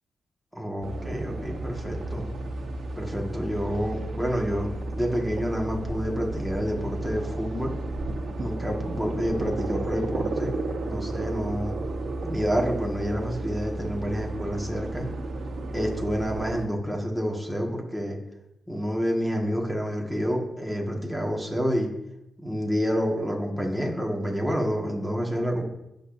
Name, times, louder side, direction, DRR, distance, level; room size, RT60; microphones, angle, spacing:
voice 1, 0.5-2.2 3.0-7.7 8.4-10.5 10.8-11.8 12.2-15.1 15.7-18.2 18.7-21.9 22.4-25.6, equal, ahead, 0 dB, 1.8 m, -28 dB
sound 1, 0.8-16.7, right 2 dB, 65° right, 1.2 m, -33 dB
16.5 x 6.7 x 2.7 m, 0.87 s
cardioid pair, 105°, 0 cm